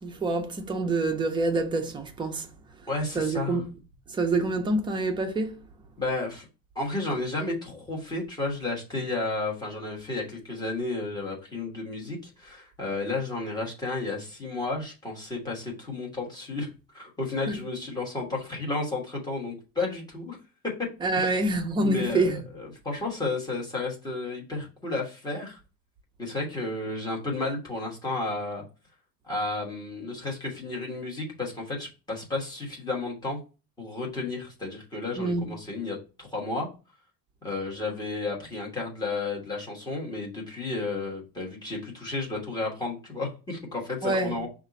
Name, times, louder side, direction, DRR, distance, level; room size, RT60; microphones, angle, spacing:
voice 1, 0.0-2.5 2.8-2.9 3.1-3.7 4.1-5.6 17.5-17.6 21.0-22.4 35.2-35.5 44.0-44.4, right 2 dB, 15° right, 0.4 m, -27 dB
voice 2, 2.9-3.6 6.0-6.4 6.7-16.7 16.9-20.4 21.1-21.4 21.8-22.2 22.8-25.6 26.2-28.6 29.3-33.4 33.8-36.7 37.4-44.5, left 3 dB, 10° left, 1.2 m, -32 dB
5.4 x 2.5 x 3.9 m
cardioid pair, 175°, 38 cm